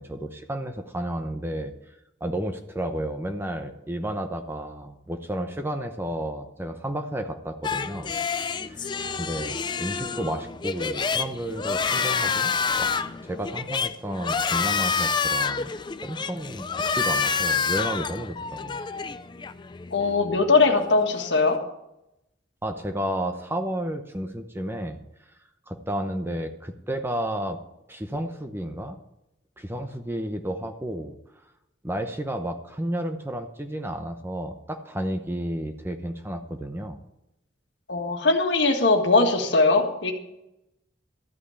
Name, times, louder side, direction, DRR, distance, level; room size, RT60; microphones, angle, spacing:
voice 1, 0.0-1.7 2.2-8.1 8.7-8.9 9.2-12.9 13.2-15.7 16.0-18.8 22.6-25.0 25.7-29.0 29.6-31.1 31.8-37.0, right 1 dB, 10° right, 6 dB, 0.8 m, -32 dB
sound 1, 7.6-21.6, left 5 dB, 25° left, 0.4 m, -28 dB
voice 2, 19.9-21.6 37.9-40.1, left 3 dB, 65° left, 4 dB, 1.6 m, -20 dB
13.5 x 6.0 x 8.3 m, 0.87 s
head